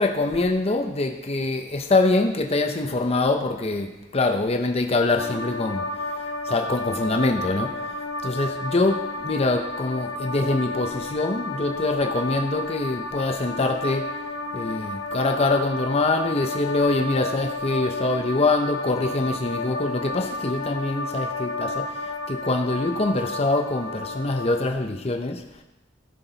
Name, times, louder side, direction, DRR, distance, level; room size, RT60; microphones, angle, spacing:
voice 1, 0.0-8.0 8.2-14.1 14.5-25.4, left 2 dB, 35° left, 5 dB, 0.7 m, -24 dB
sound 1, 5.2-24.7, left 2 dB, 70° left, 1.2 m, -31 dB
18.0 x 6.0 x 4.0 m, 1.0 s
head